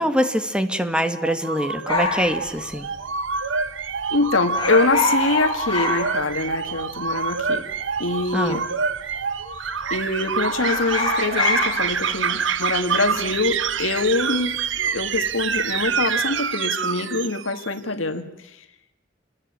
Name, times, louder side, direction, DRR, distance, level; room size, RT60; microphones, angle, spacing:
voice 1, 0.0-2.9 8.3-8.6, equal, 5° right, 8 dB, 2.0 m, -24 dB
sound 1, 1.2-17.7, right 6 dB, 70° right, 1.2 m, -27 dB
sound 2, 1.9-3.4 3.6-3.7 4.0-4.2 4.5-6.8 7.1-7.2 8.0-8.6 8.9-9.2 9.5-10.1 10.5-15.1 15.4-15.8, left 2 dB, 20° left, 7.8 m, -26 dB
voice 2, 4.1-7.7 8.0-8.6 9.9-14.5 14.9-18.6, left 3 dB, 90° left, 7 dB, 1.9 m, -24 dB
29.0 x 21.5 x 9.0 m, 0.84 s
head